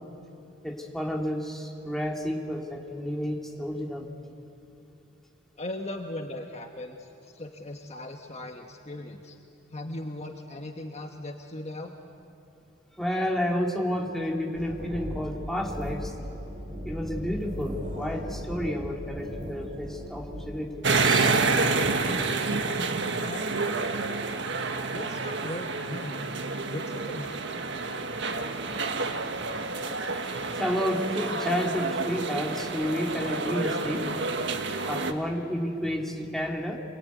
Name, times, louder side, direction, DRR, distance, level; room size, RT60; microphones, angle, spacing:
voice 1, 0.6-4.1 13.0-16.1 16.8-21.5 27.3-27.4 29.2-29.3 30.1-34.3 34.9-36.8, equal, ahead, 0 dB, 2.6 m, -31 dB
voice 2, 5.6-9.4 9.7-11.9 22.4-22.9 23.2-23.9 24.9-26.3 26.6-27.4, left 1 dB, 35° left, 3 dB, 1.3 m, -38 dB
sound 1, 14.5-20.5, equal, 45° right, 5.4 m, -37 dB
sound 2, 20.8-35.1, right 3 dB, 65° right, 1.5 m, -29 dB
26.0 x 22.0 x 9.4 m, 2.9 s
head